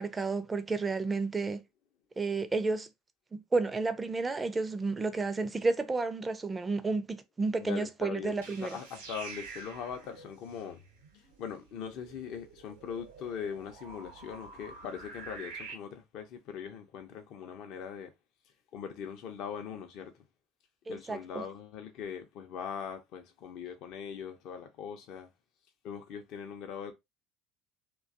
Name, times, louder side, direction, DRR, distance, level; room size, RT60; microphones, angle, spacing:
voice 1, 0.0-1.6 2.2-2.9 3.3-8.7 20.9-21.4, right 3 dB, 20° right, 0.4 m, -31 dB
voice 2, 7.6-10.8 11.1-18.1 18.7-20.2 20.9-25.3 25.8-26.9, left 7 dB, 60° left, 0.5 m, -41 dB
sound 1, 8.3-15.7, right 4 dB, 85° right, 0.8 m, -48 dB
2.5 x 2.2 x 2.5 m
hypercardioid pair, 65°, 0 cm